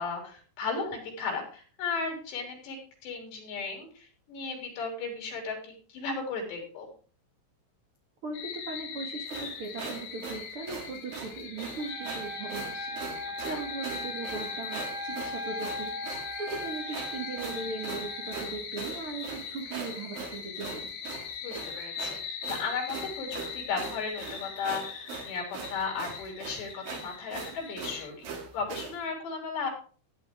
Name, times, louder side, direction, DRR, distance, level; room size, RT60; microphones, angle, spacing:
voice 1, 0.0-6.9 13.3-13.6 21.4-22.2 22.5-28.3 28.5-29.7, left 4 dB, 60° left, 2 dB, 5.2 m, -35 dB
voice 2, 8.2-15.9 16.4-21.0, right 3 dB, 85° right, 2 dB, 1.2 m, -39 dB
sound 1, 8.3-28.1, left 6 dB, 85° left, 4.8 m, -41 dB
sound 2, 9.3-29.0, right 5 dB, 55° right, 3.5 m, -41 dB
Trumpet, 11.8-18.5, equal, 10° right, 2.2 m, -39 dB
14.0 x 10.0 x 3.7 m, 0.39 s
omnidirectional pair, 5.6 m